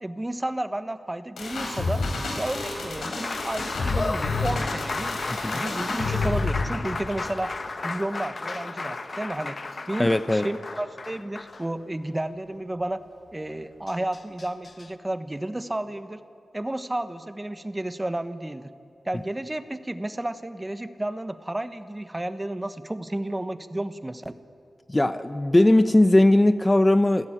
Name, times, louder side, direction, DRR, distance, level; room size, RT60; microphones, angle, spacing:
voice 1, 0.0-2.0 2.4-5.2 5.5-7.5 7.8-9.6 9.9-13.0 13.3-16.2 16.5-18.7 19.0-24.3, right 1 dB, 20° right, 11 dB, 1.2 m, -32 dB
sound 1, 1.4-6.7, left 3 dB, 85° left, 4.7 m, -29 dB
Applause, 1.8-12.1 13.5-13.6 13.9-14.9, left 3 dB, 50° left, 1.2 m, -34 dB
voice 2, 5.3-5.6 10.0-10.5 24.9-27.3, left 1 dB, 20° left, 11 dB, 0.7 m, -19 dB
28.5 x 16.0 x 9.1 m, 2.5 s
wide cardioid pair, 75°, 0 cm